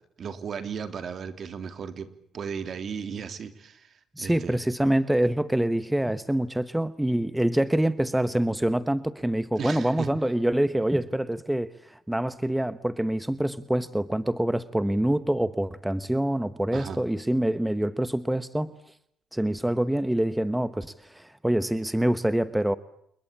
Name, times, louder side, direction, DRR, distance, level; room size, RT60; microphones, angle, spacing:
voice 1, 0.2-4.6 9.6-10.1 16.7-17.0, right 6 dB, 55° right, 10 dB, 3.2 m, -36 dB
voice 2, 4.2-18.7 19.3-22.8, right 1 dB, 5° right, 14 dB, 1.1 m, -26 dB
28.5 x 21.5 x 8.7 m, 0.74 s
cardioid pair, 90°, 0 cm